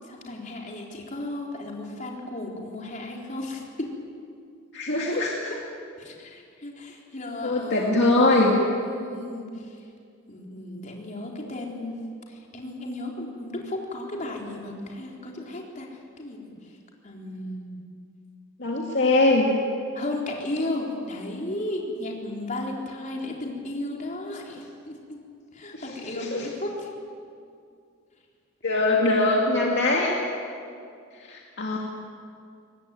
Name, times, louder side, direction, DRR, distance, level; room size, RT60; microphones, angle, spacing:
voice 1, 0.0-3.9 6.0-7.9 8.8-9.8 10.3-12.0 12.3-16.7 17.0-17.8 19.9-25.2 25.5-26.9, left 1 dB, 35° left, -1 dB, 4.0 m, -34 dB
voice 2, 4.7-5.5 7.4-8.5 18.6-19.5 26.2-26.5 28.6-30.2 31.1-31.8, left 2 dB, 55° left, -2 dB, 2.4 m, -22 dB
23.5 x 19.0 x 9.2 m, 2.4 s
head